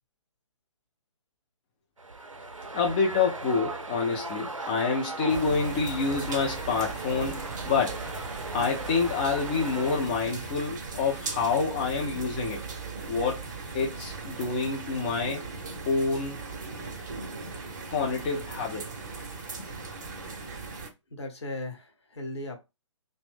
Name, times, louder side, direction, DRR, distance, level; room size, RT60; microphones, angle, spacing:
sound 1, 2.0-10.0, right 3 dB, 90° right, 0.5 m, -38 dB
voice 1, 2.7-8.0 8.5-12.6 13.1-13.4 13.7-15.5 15.9-16.4 17.9-18.9 19.6-19.7, left 4 dB, 20° left, 0.4 m, -27 dB
sound 2, 5.3-20.9, right 4 dB, 35° right, 0.6 m, -38 dB
voice 2, 21.1-22.6, left 1 dB, 60° left, 0.9 m, -37 dB
2.5 x 2.0 x 3.4 m
figure-of-eight pair, 130°, 16 cm